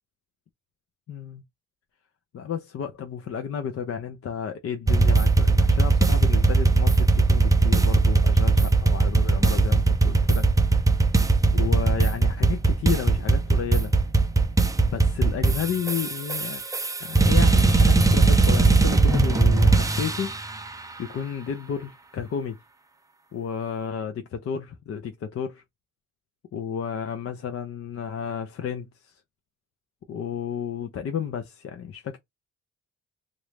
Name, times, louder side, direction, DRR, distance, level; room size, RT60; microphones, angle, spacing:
voice 1, 1.1-1.4 2.3-10.5 10.7-10.9 11.5-13.9 14.9-16.6 17.0-20.3 21.0-22.6 23.3-25.6 26.5-29.2 30.1-32.2, left 7 dB, 50° left, 0.6 m, -32 dB
sound 1, 4.9-20.4, right 3 dB, 10° right, 0.5 m, -19 dB
3.0 x 2.5 x 3.3 m
cardioid pair, 90°, 30 cm